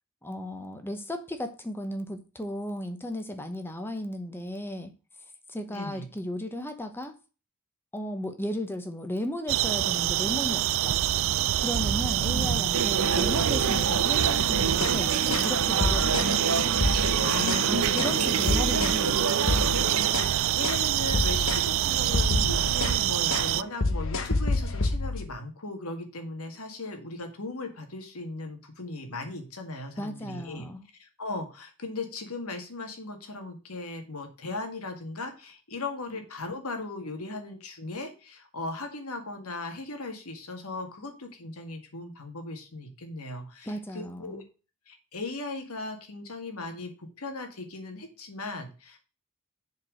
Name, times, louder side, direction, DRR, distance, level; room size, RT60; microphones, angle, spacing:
voice 1, 0.2-4.9 5.5-7.1 7.9-11.0 11.6-16.7 17.7-19.2 30.0-30.8 43.7-44.4, left 1 dB, 10° left, 8 dB, 1.0 m, -35 dB
voice 2, 5.7-6.1 12.2-12.7 17.2-18.6 20.1-30.6 31.0-44.4 44.9-49.0, left 2 dB, 80° left, 5 dB, 2.0 m, -37 dB
sound 1, 9.5-23.6, right 12 dB, 60° right, 0.3 m, -26 dB
sound 2, 12.7-20.1, right 4 dB, 85° right, 1.1 m, -29 dB
sound 3, 14.7-15.0 15.3-15.5 15.8-16.4 16.7-17.7 18.0-18.2 18.5-19.0 19.4-20.4 20.6-20.9 21.1-21.7 22.0-23.0 23.3-23.5 23.8-25.3, left 2 dB, 60° left, 1.1 m, -29 dB
7.4 x 4.6 x 6.3 m, 0.34 s
head